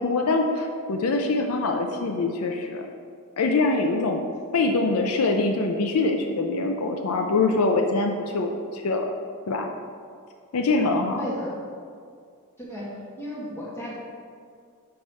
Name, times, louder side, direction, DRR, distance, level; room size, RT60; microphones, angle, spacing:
voice 1, 0.0-2.9 3.4-4.2 4.5-9.1 9.5-9.7 10.5-11.2, left 3 dB, 70° left, 3 dB, 0.5 m, -24 dB
voice 2, 11.2-11.5 12.6-12.9 13.2-14.0, equal, 10° left, -6 dB, 1.6 m, -34 dB
6.4 x 5.5 x 4.3 m, 2.2 s
head